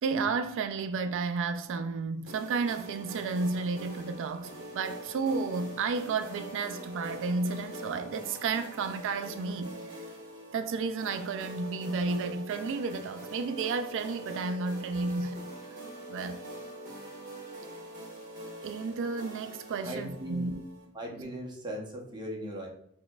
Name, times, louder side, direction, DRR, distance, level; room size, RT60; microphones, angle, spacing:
voice 1, 0.0-10.0 10.5-15.5 16.1-16.4 18.6-20.6, right 4 dB, 60° right, 0.3 m, -32 dB
sound 1, 2.3-20.8, right 1 dB, 40° right, 1.3 m, -44 dB
voice 2, 19.8-20.5 20.9-22.7, equal, 20° right, 0.7 m, -38 dB
5.8 x 2.2 x 2.3 m
head